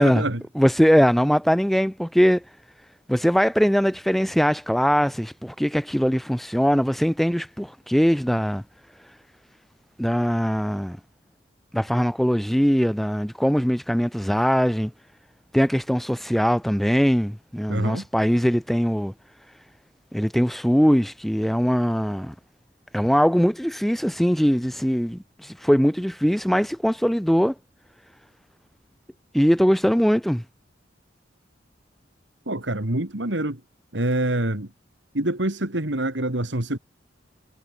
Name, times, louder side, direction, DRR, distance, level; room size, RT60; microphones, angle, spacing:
voice 1, 0.0-0.4 17.7-18.0 32.5-33.6 33.9-34.7 35.1-36.8, right 1 dB, 70° right, 2.7 m, -25 dB
voice 2, 0.6-2.4 3.1-8.6 10.0-11.0 11.7-14.9 15.5-19.1 20.1-22.3 22.9-27.5 29.3-30.4, equal, ahead, 0.5 m, -21 dB
head